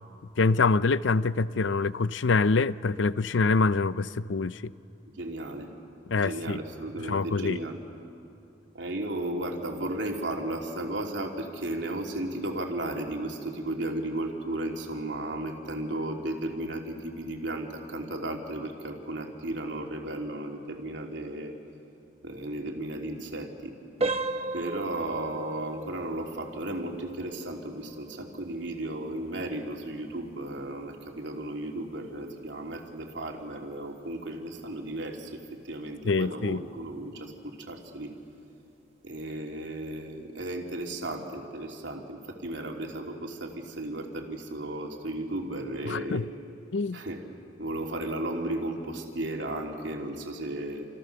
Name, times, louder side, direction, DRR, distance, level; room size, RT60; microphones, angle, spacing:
voice 1, 0.4-4.7 6.1-6.6 7.1-7.6 36.0-36.6 45.9-46.3 46.7-47.0, left 4 dB, 85° left, 0.6 m, -25 dB
voice 2, 5.2-5.7 6.2-7.8 8.7-21.6 22.2-23.7 24.5-38.2 39.0-46.2 46.9-47.2 47.6-50.9, right 1 dB, 80° right, 3.2 m, -34 dB
sound 1, 24.0-34.7 35.0-35.3 35.8-35.9 36.4-36.6, right 2 dB, 35° right, 1.0 m, -38 dB
29.0 x 28.0 x 6.9 m
head